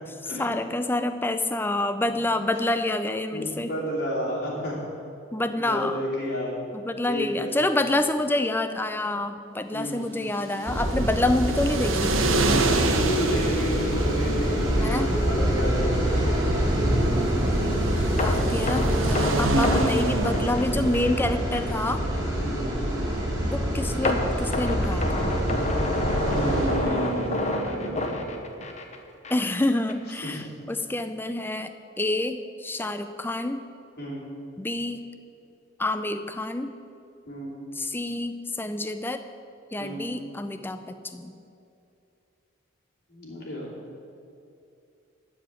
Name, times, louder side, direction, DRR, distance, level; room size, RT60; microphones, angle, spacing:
voice 1, 0.4-3.7 5.3-6.0 6.7-12.2 14.8-15.1 18.2-22.0 23.4-25.3 29.3-33.6 34.6-35.0 35.8-36.7 37.8-39.2 39.7-41.4, left 2 dB, 10° left, 9 dB, 0.4 m, -27 dB
voice 2, 3.3-4.8 5.5-6.6 7.1-7.6 9.7-10.0 12.9-16.1 22.4-22.8 26.2-28.4 30.2-30.4 34.0-34.2 37.3-37.6 39.8-40.1 43.1-43.7, equal, 50° left, -5 dB, 3.3 m, -31 dB
sound 1, 10.2-28.1, right 2 dB, 80° right, 1.1 m, -30 dB
sound 2, 10.6-26.7, equal, 20° right, 2.3 m, -26 dB
sound 3, 18.2-21.2 21.5-21.7 22.2-22.3 24.0-29.0 29.2-29.5 29.9-30.0, left 2 dB, 35° left, 0.9 m, -28 dB
12.5 x 5.1 x 8.8 m, 2.6 s
head